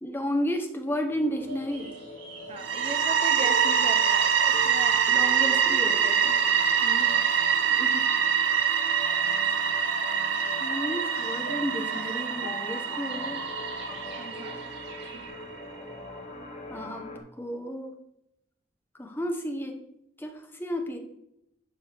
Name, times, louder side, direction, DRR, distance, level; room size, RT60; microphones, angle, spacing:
voice 1, 0.0-1.9 5.1-6.4 7.3-7.4 10.6-13.4 16.7-17.1 17.4-17.9 19.0-19.8 20.2-21.0, equal, 10° left, 3 dB, 0.8 m, -32 dB
sound 1, 1.1-17.2, left 2 dB, 40° left, 0.9 m, -44 dB
sound 2, 1.5-15.3, right 1 dB, 60° right, 2.3 m, -46 dB
voice 2, 2.5-5.2 6.8-7.3 7.8-8.1 9.3-9.7 14.2-14.6 15.1-15.2, right 3 dB, 30° right, 7 dB, 0.6 m, -39 dB
sound 3, 2.6-15.3, right 7 dB, 85° right, 0.6 m, -25 dB
11.5 x 4.5 x 3.4 m, 0.81 s
head